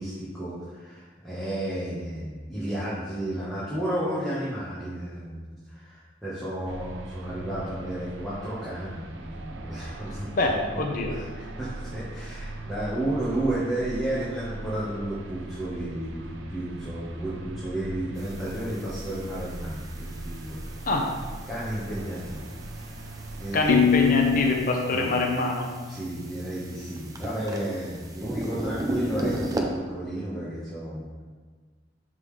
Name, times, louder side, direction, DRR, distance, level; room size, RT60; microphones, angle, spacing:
voice 1, 0.0-10.6 11.1-20.6 21.5-22.4 22.7-22.9 23.4-24.0 24.9-25.2 25.9-31.2, right 1 dB, ahead, -10 dB, 1.3 m, -32 dB
sound 1, 6.7-24.6, right 2 dB, 80° right, 0.6 m, -40 dB
voice 2, 10.3-11.2 20.9-21.1 23.5-25.7, left 2 dB, 45° left, 1 dB, 0.8 m, -25 dB
sound 2, 18.2-29.6, right 1 dB, 20° right, 0.6 m, -37 dB
sound 3, 23.7-26.6, left 8 dB, 85° left, 0.3 m, -25 dB
10.5 x 3.8 x 3.3 m, 1.4 s
head